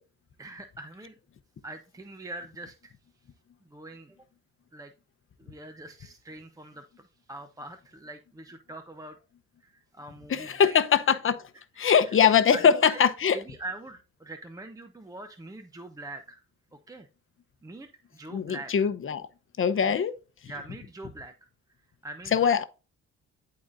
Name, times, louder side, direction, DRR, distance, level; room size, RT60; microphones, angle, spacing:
voice 1, 0.4-1.1 1.6-2.9 3.7-4.2 4.7-4.9 5.4-9.2 9.6-10.8 12.5-13.0 13.3-16.4 16.9-17.1 17.6-18.9 19.9-20.0 20.5-21.3 22.0-22.4, right 2 dB, 10° right, 0.7 m, -43 dB
voice 2, 10.3-11.4 11.8-13.4 18.3-19.3 19.6-20.1 22.3-22.6, left 7 dB, 45° left, 0.8 m, -22 dB
12.0 x 4.1 x 2.6 m
cardioid pair, 90°, 30 cm